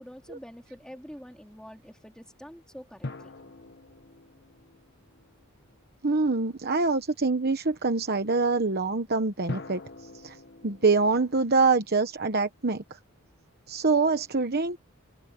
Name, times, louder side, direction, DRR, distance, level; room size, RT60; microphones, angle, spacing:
voice 1, 0.0-3.3, equal, 5° left, 3.7 m, -46 dB
sound 1, 3.0-5.9 9.5-12.8, left 2 dB, 50° left, 1.5 m, -43 dB
voice 2, 6.0-9.8 10.2-10.4 10.6-13.0 13.7-14.8, right 4 dB, 45° right, 1.1 m, -25 dB
head